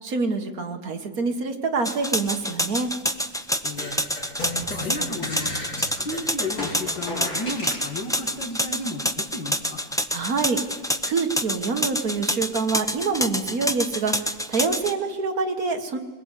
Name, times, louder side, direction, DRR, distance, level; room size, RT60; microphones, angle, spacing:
voice 1, 0.0-2.9 10.1-10.6 11.0-16.0, right 4 dB, 55° right, 5 dB, 2.0 m, -26 dB
sound 1, 1.8-14.9, equal, 5° left, 0.4 m, -27 dB
voice 2, 3.6-4.0 4.7-5.7 6.0-9.8, left 2 dB, 85° left, -1 dB, 2.7 m, -33 dB
sound 2, 3.8-7.9, left 1 dB, 55° left, 5.5 m, -33 dB
22.0 x 22.0 x 8.3 m, 1.4 s
omnidirectional pair, 2.0 m